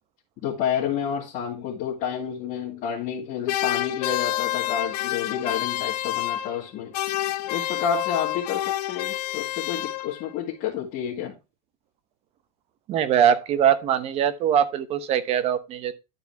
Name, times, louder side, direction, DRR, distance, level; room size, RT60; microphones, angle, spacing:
voice 1, 0.4-6.9 7.5-11.4, left 8 dB, 40° left, 2.2 m, -30 dB
sound 1, 3.5-6.7 6.9-10.3, left 14 dB, 75° left, 0.9 m, -28 dB
voice 2, 12.9-15.9, right 9 dB, 30° right, 0.8 m, -22 dB
10.5 x 4.7 x 4.6 m
supercardioid pair, 160°, 21 cm